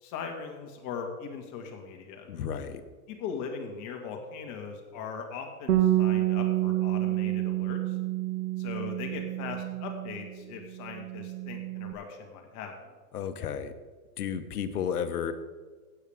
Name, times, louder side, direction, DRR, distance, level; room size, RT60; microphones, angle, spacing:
voice 1, 0.0-2.3 3.1-8.0 8.6-12.9, left 6 dB, 40° left, 3 dB, 2.0 m, -40 dB
voice 2, 2.3-2.8 13.1-13.7 14.2-15.3, left 8 dB, 75° left, 10 dB, 1.2 m, -32 dB
Bass guitar, 5.7-10.4 10.6-11.9, right 14 dB, 80° right, 1.1 m, -29 dB
15.5 x 8.8 x 3.6 m, 1.4 s
hypercardioid pair, 120°, 46 cm